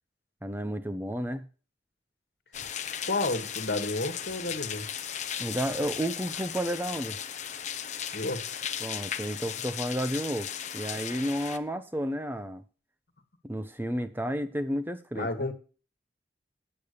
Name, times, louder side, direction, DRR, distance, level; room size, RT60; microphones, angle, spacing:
voice 1, 0.4-1.4 5.4-7.2 8.8-12.6 13.4-15.5, equal, 10° right, 0.8 m, -32 dB
sound 1, 2.5-11.6, left 9 dB, 40° left, 0.8 m, -36 dB
voice 2, 3.0-4.9 8.1-8.5 15.1-15.5, left 2 dB, 65° left, 1.6 m, -31 dB
8.9 x 8.3 x 6.7 m
head